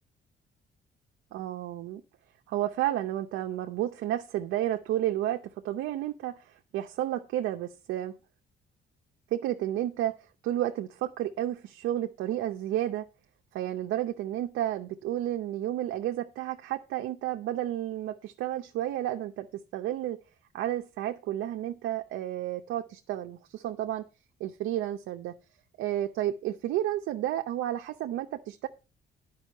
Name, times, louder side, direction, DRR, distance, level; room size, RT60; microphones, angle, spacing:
voice 1, 1.3-2.0 2.5-8.2 9.3-10.2 10.4-13.1 13.5-20.2 20.5-24.0 24.4-25.3 25.8-28.7, right 13 dB, 90° right, 4 dB, 0.7 m, -31 dB
9.9 x 5.5 x 5.4 m, 0.31 s
cardioid pair, 90°, 20 cm